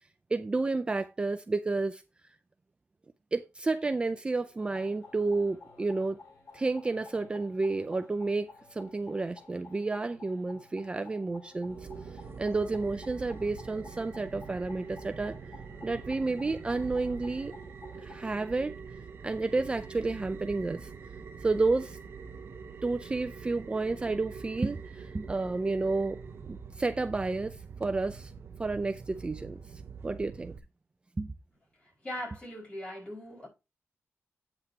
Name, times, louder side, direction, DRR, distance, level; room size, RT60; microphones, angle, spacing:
voice 1, 0.3-2.0 3.3-6.2 6.5-15.4 15.8-17.7 18.0-18.8 19.2-20.9 21.4-22.0 22.8-26.2 26.5-28.3 28.6-30.6 31.2-31.3, right 3 dB, 20° right, 0.4 m, -31 dB
sound 1, 4.6-18.2, left 3 dB, 85° left, 3.3 m, -53 dB
sound 2, 11.6-30.6, right 5 dB, 50° right, 0.8 m, -44 dB
voice 2, 32.0-33.5, equal, 30° left, 5.2 m, -39 dB
8.7 x 7.8 x 2.8 m
wide cardioid pair, 170°, 5 cm